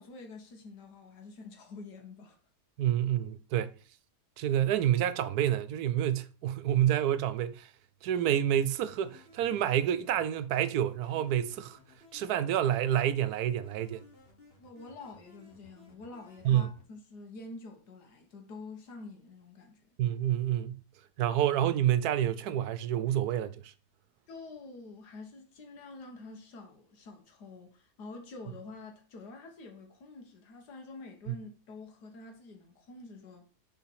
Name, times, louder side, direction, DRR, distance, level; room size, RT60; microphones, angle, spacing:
voice 1, 0.0-2.4 14.6-19.8 24.3-33.5, left 3 dB, 85° left, 1.8 m, -47 dB
voice 2, 2.8-3.8 4.4-7.7 8.0-11.8 12.1-14.0 16.4-16.7 20.0-20.8 21.2-23.7 31.3-31.4, right 11 dB, 75° right, 1.1 m, -28 dB
sound 1, 8.9-16.9, left 3 dB, 40° left, 1.6 m, -58 dB
7.0 x 4.2 x 4.6 m
omnidirectional pair, 1.7 m